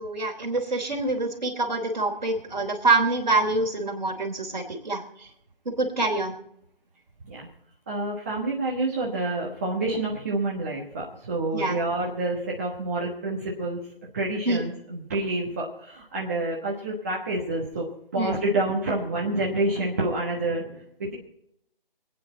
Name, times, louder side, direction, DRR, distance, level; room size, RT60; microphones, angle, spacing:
voice 1, 0.0-5.0 5.8-6.3 11.5-11.7 14.4-14.6 18.2-18.3, right 3 dB, 50° right, 2 dB, 3.3 m, -25 dB
voice 2, 7.9-13.8 14.1-17.9 18.1-21.1, right 2 dB, 15° right, -5 dB, 1.2 m, -28 dB
26.0 x 9.4 x 4.0 m, 0.75 s
figure-of-eight pair, 160°, 29 cm